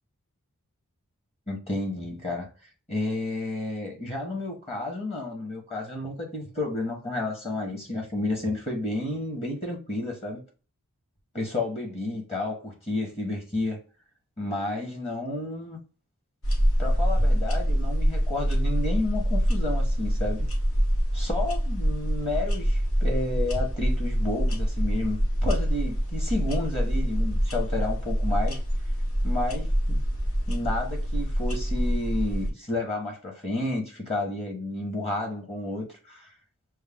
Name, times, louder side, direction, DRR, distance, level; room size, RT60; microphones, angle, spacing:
voice 1, 1.5-2.5 2.9-10.4 11.3-13.8 14.4-15.8 16.8-20.5 21.1-28.6 29.2-30.0 30.5-36.3, left 2 dB, 25° left, 1.1 m, -31 dB
sound 1, 16.4-32.5, equal, 60° left, 1.0 m, -25 dB
6.3 x 2.1 x 3.6 m
head